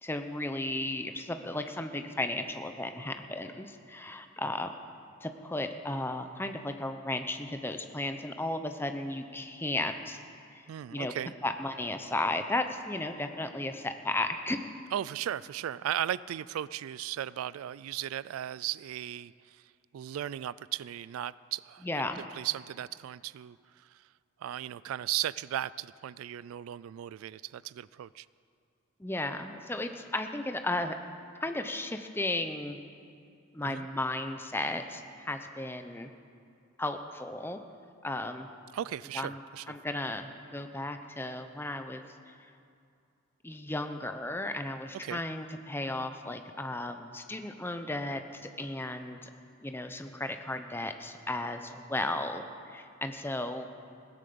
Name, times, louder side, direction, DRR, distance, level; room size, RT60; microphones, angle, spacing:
voice 1, 0.0-4.7 5.2-10.2 10.5-10.6 10.9-11.1 11.4-14.7 21.8-22.2 29.0-30.9 31.4-32.8 33.5-36.1 36.8-37.6 38.0-38.5 39.1-39.4 39.7-42.1 43.4-49.3 49.6-53.7, left 2 dB, 10° left, 7 dB, 0.7 m, -34 dB
voice 2, 10.7-11.3 14.9-19.6 19.9-22.0 22.3-24.0 24.4-28.3 33.6-33.9 38.7-39.8 45.0-45.2, right 11 dB, 90° right, 20 dB, 0.3 m, -36 dB
17.0 x 10.0 x 6.9 m, 2.4 s
head